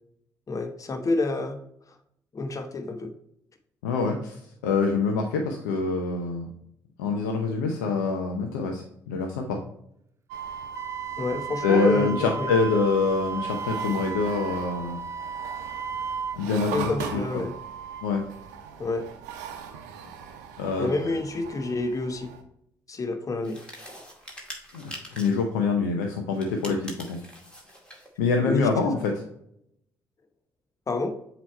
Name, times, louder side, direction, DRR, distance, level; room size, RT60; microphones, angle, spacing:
voice 1, 0.5-1.6 2.3-3.1 11.2-12.5 16.7-17.5 18.8-19.0 20.8-22.3 22.9-23.6 28.4-28.7 30.9-31.1, left 3 dB, 35° left, 6 dB, 1.0 m, -28 dB
voice 2, 3.8-6.5 7.0-9.6 11.6-15.0 16.4-17.4 18.0-18.2 20.6-20.9 24.7-27.2 28.2-29.2, left 4 dB, 80° left, 2 dB, 0.7 m, -25 dB
sound 1, 10.3-22.4, right 7 dB, 80° right, 0.7 m, -41 dB
Wind instrument woodwind instrument, 10.7-16.4, right 6 dB, 30° right, 0.4 m, -34 dB
sound 2, 23.4-25.5 26.3-28.1, equal, 10° left, 2.2 m, -43 dB
7.5 x 3.1 x 4.2 m, 0.74 s
hypercardioid pair, 50°, 9 cm